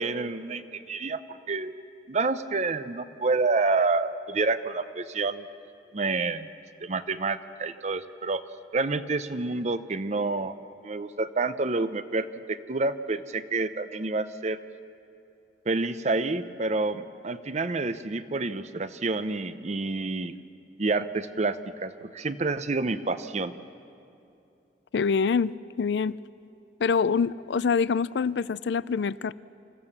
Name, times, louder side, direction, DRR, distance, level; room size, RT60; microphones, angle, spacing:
voice 1, 0.0-1.7 2.1-5.5 5.9-6.5 6.8-8.4 8.7-10.5 10.8-14.6 15.7-20.3 20.8-23.5, right 3 dB, 40° right, 12 dB, 0.7 m, -28 dB
voice 2, 24.9-26.2 26.8-29.3, left 5 dB, 80° left, 19 dB, 0.4 m, -25 dB
26.5 x 15.0 x 7.3 m, 2.7 s
head